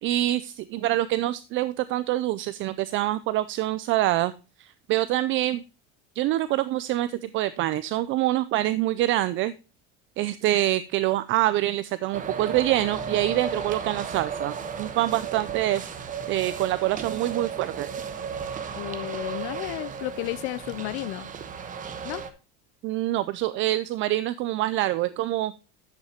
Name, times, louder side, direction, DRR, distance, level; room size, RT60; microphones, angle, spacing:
voice 1, 0.0-4.3 4.6-5.6 6.2-9.5 10.2-15.8 16.3-17.9 22.8-25.5, right 15 dB, 45° right, 16 dB, 0.4 m, -25 dB
sound 1, 12.1-22.3, right 6 dB, 25° right, 1.1 m, -34 dB
voice 2, 18.7-21.3 22.0-22.2, left 19 dB, 65° left, 15 dB, 0.5 m, -32 dB
10.5 x 8.1 x 2.8 m, 0.32 s
cardioid pair, 150°, 29 cm